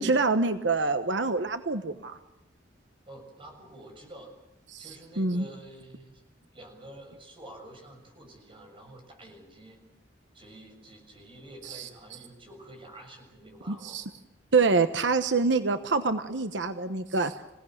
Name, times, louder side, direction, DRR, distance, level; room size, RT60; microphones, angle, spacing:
voice 1, 0.0-2.2 4.7-4.8 5.2-5.4 11.6-11.9 13.7-14.0 14.5-17.4, right 4 dB, 80° right, 10 dB, 1.1 m, -26 dB
voice 2, 3.1-4.3 4.8-6.2 6.5-9.8 10.3-14.0, right 1 dB, 30° right, 3 dB, 6.7 m, -48 dB
27.5 x 17.5 x 8.0 m, 0.96 s
head